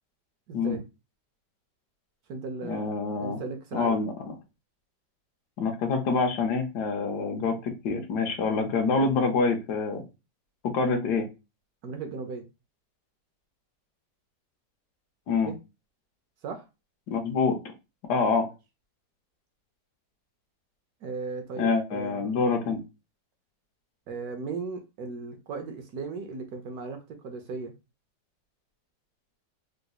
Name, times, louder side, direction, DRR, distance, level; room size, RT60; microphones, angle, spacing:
voice 1, 0.5-0.8 2.3-4.0 11.8-12.5 15.5-15.6 16.4-16.6 21.0-22.3 24.1-27.0 27.2-27.7, right 4 dB, 70° right, 5 dB, 1.0 m, -36 dB
voice 2, 2.6-3.4 3.7-4.1 5.6-10.0 10.6-11.3 15.3-15.5 17.1-17.6 18.1-18.5 21.6-22.8, left 4 dB, 75° left, 4 dB, 1.2 m, -26 dB
3.8 x 2.5 x 2.3 m, 0.27 s
omnidirectional pair, 1.9 m